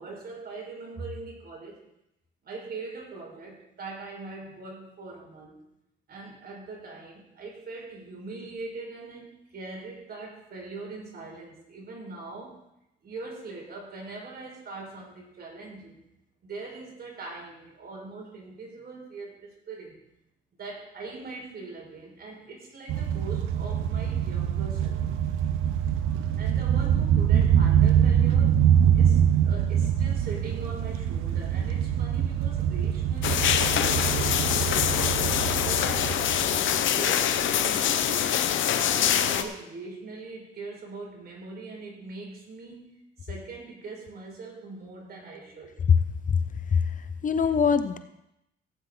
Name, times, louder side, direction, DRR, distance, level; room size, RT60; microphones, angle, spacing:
voice 1, 0.0-1.8 2.4-5.6 6.1-12.6 13.0-15.9 16.4-20.0 20.6-25.0 26.4-28.6 28.9-35.2 35.6-36.2 36.7-38.4 39.2-45.8, right 3 dB, 50° right, 0 dB, 4.9 m, -41 dB
sound 1, 22.9-36.7, right 9 dB, 90° right, 0.7 m, -24 dB
sound 2, 33.2-39.4, left 10 dB, 75° left, 0.9 m, -24 dB
voice 2, 47.2-48.0, left 6 dB, 40° left, 10 dB, 0.8 m, -23 dB
16.0 x 9.3 x 3.9 m, 0.85 s
cardioid pair, 90°, 20 cm